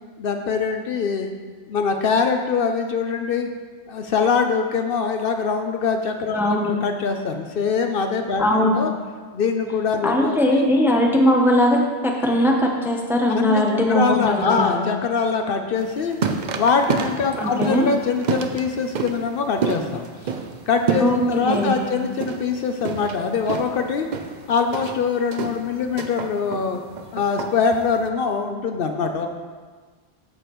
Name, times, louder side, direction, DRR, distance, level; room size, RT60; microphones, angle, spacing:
voice 1, 0.2-1.3 1.7-3.5 3.9-8.9 9.3-10.7 13.3-16.2 16.5-20.4 20.7-24.1 24.5-26.8 27.1-29.3, left 5 dB, 65° left, 5 dB, 0.7 m, -23 dB
voice 2, 6.3-6.7 8.4-8.8 10.0-14.8 17.4-17.9 21.0-21.9, left 1 dB, ahead, 0 dB, 0.6 m, -20 dB
sound 1, 15.8-28.1, right 5 dB, 55° right, 0.6 m, -29 dB
13.0 x 5.0 x 3.0 m, 1.5 s
omnidirectional pair, 1.1 m